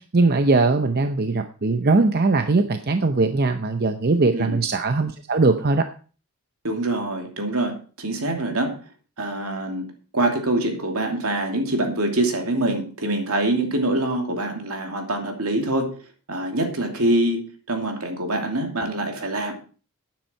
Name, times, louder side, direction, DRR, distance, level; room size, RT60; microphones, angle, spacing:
voice 1, 0.1-5.9, right 3 dB, 45° right, 8 dB, 0.7 m, -20 dB
voice 2, 6.6-8.8 9.2-9.9 10.1-15.9 16.3-17.4 17.7-19.5, right 1 dB, 70° right, 3 dB, 2.7 m, -24 dB
11.5 x 9.3 x 4.5 m, 0.38 s
head